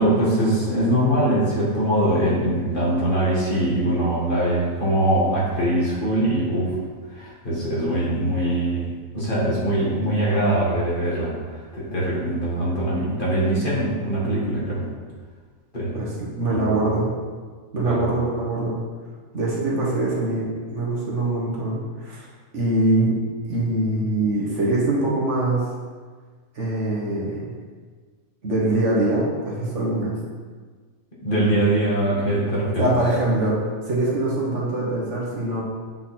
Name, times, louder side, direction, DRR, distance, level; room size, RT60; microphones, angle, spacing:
voice 1, 0.0-6.8 7.1-8.9 9.1-14.9 15.7-16.2 16.5-16.9 17.8-18.0 31.2-32.9, right 1 dB, 40° left, -7 dB, 1.9 m, -22 dB
voice 2, 15.9-17.1 17.7-18.8 19.3-22.3 22.5-23.2 23.5-25.6 26.5-27.5 28.4-30.2 32.8-35.6, right 2 dB, 60° right, -4 dB, 1.6 m, -23 dB
7.5 x 4.0 x 4.3 m, 1.5 s
omnidirectional pair, 1.5 m